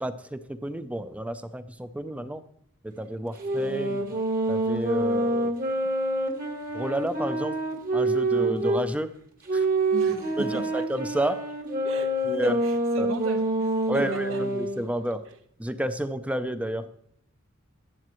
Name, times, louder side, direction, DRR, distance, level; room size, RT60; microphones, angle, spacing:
voice 1, 0.0-2.4 2.8-4.1 4.5-5.5 6.7-7.6 7.9-9.1 9.5-9.7 10.4-11.5 12.2-12.6 13.0-13.1 13.9-15.3 15.6-16.9, right 1 dB, 5° right, 0.5 m, -30 dB
sound 1, 3.4-8.8 9.5-14.8, right 2 dB, 45° right, 1.5 m, -27 dB
voice 2, 9.9-10.9 11.8-13.7 13.9-14.5 15.3-15.4, right 3 dB, 75° right, 1.0 m, -36 dB
12.5 x 8.5 x 3.1 m
head